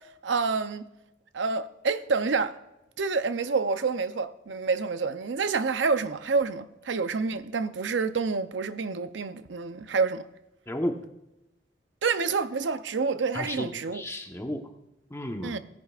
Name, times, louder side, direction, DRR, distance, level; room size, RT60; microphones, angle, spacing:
voice 1, 0.2-0.8 1.3-2.6 3.0-10.3 12.0-14.0 15.4-15.6, right 4 dB, 85° right, 0.6 m, -28 dB
voice 2, 13.3-14.6 15.1-15.6, left 1 dB, 15° left, 1.0 m, -33 dB
17.5 x 10.5 x 2.4 m
head